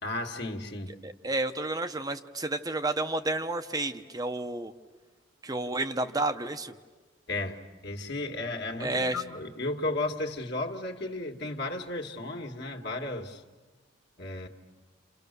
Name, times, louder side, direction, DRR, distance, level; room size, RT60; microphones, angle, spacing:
voice 1, 0.0-1.0 7.3-13.4 14.2-14.5, left 2 dB, 55° left, 2 dB, 2.0 m, -34 dB
voice 2, 1.0-4.7 5.4-6.7 8.8-9.2, right 2 dB, 20° right, 7 dB, 0.8 m, -31 dB
29.0 x 28.5 x 6.8 m, 1.3 s
head